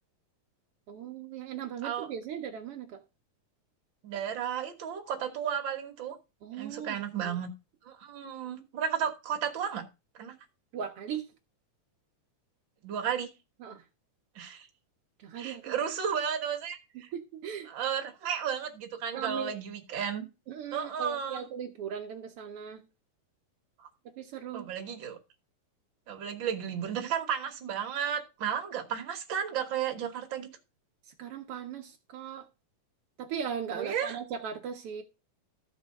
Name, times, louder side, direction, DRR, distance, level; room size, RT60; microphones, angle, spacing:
voice 1, 0.9-3.0 6.4-7.3 10.7-11.2 13.6-13.8 15.2-15.7 17.1-17.7 19.1-19.6 20.5-22.8 24.2-24.7 31.2-32.4 33.2-35.0, right 8 dB, 80° right, 1.3 m, -38 dB
voice 2, 4.0-6.2 6.6-7.5 7.8-9.8 10.1-10.3 12.8-13.3 14.3-14.7 15.4-17.1 17.6-20.3 20.7-21.4 23.8-23.9 24.5-25.2 26.1-30.5 33.7-34.2, right 8 dB, 50° right, 1.5 m, -33 dB
13.5 x 4.6 x 5.2 m
omnidirectional pair, 3.9 m